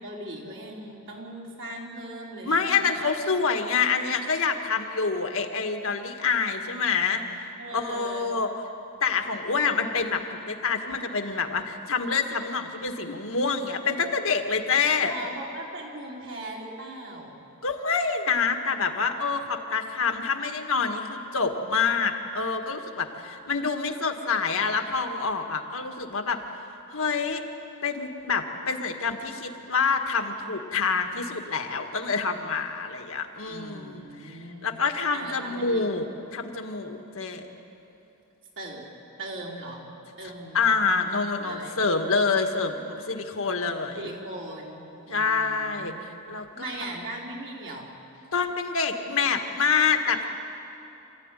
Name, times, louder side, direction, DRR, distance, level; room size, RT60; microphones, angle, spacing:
voice 1, 0.0-2.6 2.8-3.1 7.6-8.4 15.1-17.4 33.5-34.8 35.1-35.8 38.6-38.8 39.2-39.9 40.2-40.9 41.4-41.8 44.0-46.1 46.5-47.9, right 1 dB, 60° right, -2 dB, 4.2 m, -39 dB
voice 2, 2.5-8.5 9.0-15.1 17.6-26.4 26.9-27.4 27.8-36.0 36.3-37.4 40.5-44.0 45.1-46.7 48.3-50.3, left 5 dB, 65° left, 5 dB, 1.8 m, -27 dB
27.0 x 15.0 x 9.9 m, 2.9 s
head